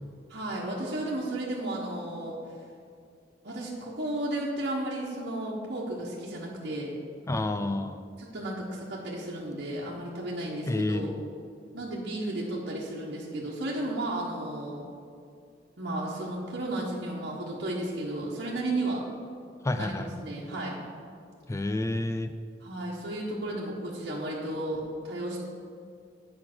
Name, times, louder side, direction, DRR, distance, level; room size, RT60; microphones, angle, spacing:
voice 1, 0.3-2.4 3.4-6.9 8.2-11.1 11.7-14.8 15.8-19.0 19.7-20.8 22.6-25.4, right 1 dB, 60° right, -5 dB, 1.3 m, -33 dB
voice 2, 7.3-8.0 10.7-11.1 19.6-20.1 21.5-22.3, left 2 dB, 15° left, 9 dB, 0.3 m, -29 dB
8.6 x 5.7 x 6.1 m, 2.3 s
head